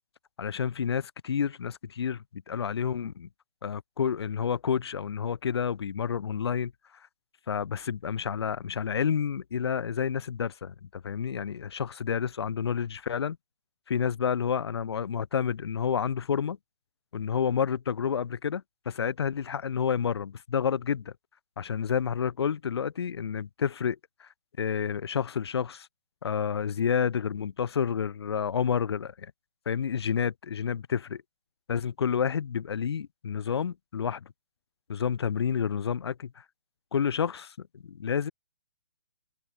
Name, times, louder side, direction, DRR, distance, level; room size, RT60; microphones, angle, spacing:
voice 1, 0.4-3.3 3.6-7.1 7.5-13.4 13.9-16.6 17.1-21.1 21.6-24.3 24.6-25.9 26.2-29.3 29.6-31.2 31.7-34.3 34.9-36.4 36.9-38.3, left 7 dB, 70° left, 4.8 m, -29 dB
hypercardioid pair, 165°, 14 cm